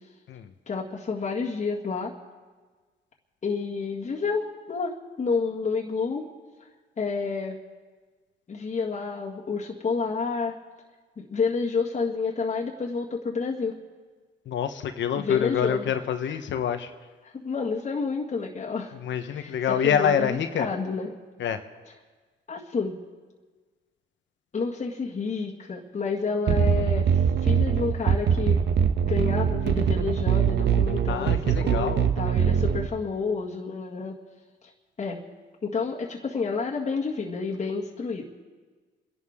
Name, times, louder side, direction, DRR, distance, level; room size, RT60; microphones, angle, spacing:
voice 1, 0.7-2.1 3.4-6.3 7.0-7.6 8.5-10.5 11.2-13.8 15.2-15.9 16.2-16.4 17.2-18.9 19.3-21.1 21.9-22.0 22.5-23.0 24.5-28.7 29.0-34.2 35.0-35.2 35.6-38.2, left 4 dB, 35° left, -3 dB, 1.9 m, -30 dB
voice 2, 14.5-16.9 19.0-20.7 21.4-21.6 31.1-32.1, left 8 dB, 70° left, 8 dB, 1.1 m, -26 dB
sound 1, 26.5-32.9, right 7 dB, 60° right, 1.0 m, -23 dB
30.0 x 11.0 x 3.7 m, 1.4 s
cardioid pair, 90°, 20 cm